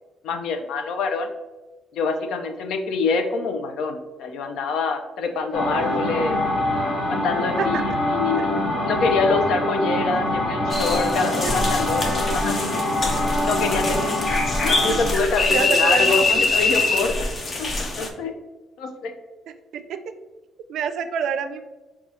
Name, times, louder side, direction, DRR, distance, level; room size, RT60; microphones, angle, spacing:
voice 1, 0.2-1.3 1.9-6.4 7.1-12.6 13.3-14.0 14.6-17.1 17.6-18.3 18.8-19.1, left 4 dB, 80° left, 6 dB, 0.5 m, -25 dB
sound 1, 5.5-15.1, left 1 dB, 60° left, 1.1 m, -24 dB
sound 2, 10.7-18.1, left 3 dB, 35° left, 0.5 m, -24 dB
voice 2, 15.5-16.4 19.7-20.1 20.7-21.6, right 7 dB, 70° right, 9 dB, 0.3 m, -27 dB
6.0 x 2.3 x 2.7 m, 1.2 s
cardioid pair, 120°, 0 cm